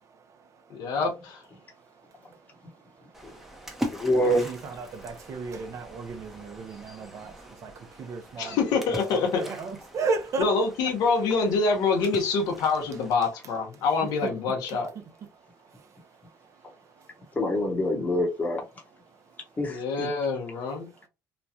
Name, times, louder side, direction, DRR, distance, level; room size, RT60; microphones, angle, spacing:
voice 1, 0.0-0.9 1.6-8.6 9.1-10.5 14.0-14.3 14.7-14.8 15.3-17.3 19.1-19.6 20.9-21.1, right 4 dB, 50° right, 0.8 m, -37 dB
voice 2, 0.7-1.4 8.4-9.6 10.4-14.9 19.6-20.9, left 4 dB, 75° left, 0.9 m, -26 dB
Splash splatter, 3.1-13.1, equal, 5° right, 0.8 m, -42 dB
voice 3, 3.9-4.4 17.3-18.6 19.6-20.1, left 1 dB, 25° left, 1.0 m, -25 dB
3.1 x 2.2 x 2.7 m
cardioid pair, 100°, 6 cm